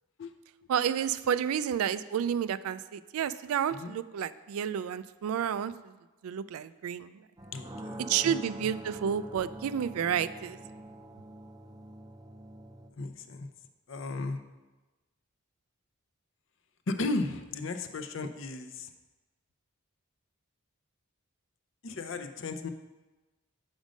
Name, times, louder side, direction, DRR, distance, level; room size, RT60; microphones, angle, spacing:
voice 1, 0.7-5.7 6.2-7.1 8.1-10.6, right 8 dB, 85° right, 16 dB, 0.3 m, -30 dB
sound 1, 7.4-12.9, right 1 dB, 20° right, 0.4 m, -45 dB
voice 2, 7.5-8.7 13.0-13.5 13.9-14.4 16.9-18.9 21.8-22.7, left 3 dB, 60° left, 8 dB, 0.6 m, -35 dB
6.3 x 5.2 x 5.1 m, 1.2 s
head